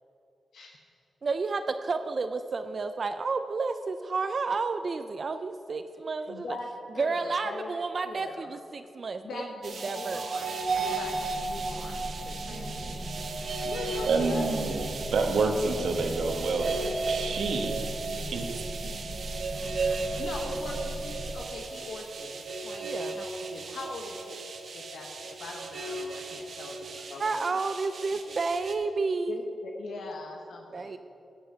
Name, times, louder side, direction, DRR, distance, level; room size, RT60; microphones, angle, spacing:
voice 1, 0.5-0.9 6.3-6.7 6.9-7.7 8.0-8.5 9.2-13.3 13.6-14.5 14.8-15.0 20.0-26.8 27.1-27.4 29.3-31.0, left 3 dB, 90° left, 1 dB, 1.1 m, -41 dB
voice 2, 1.2-6.5 7.0-9.5 9.8-10.3 12.4-13.1 22.8-23.2 27.2-29.4 30.7-31.0, right 4 dB, 50° right, 8 dB, 0.4 m, -31 dB
sound 1, 9.6-28.7, right 3 dB, 65° right, 1.1 m, -35 dB
sound 2, 10.6-21.3, equal, 20° right, 1.6 m, -39 dB
voice 3, 14.1-16.7 17.0-17.8 18.3-18.5, right 3 dB, 90° right, 4 dB, 1.2 m, -28 dB
14.0 x 7.8 x 5.8 m, 2.9 s
cardioid pair, 90°, 0 cm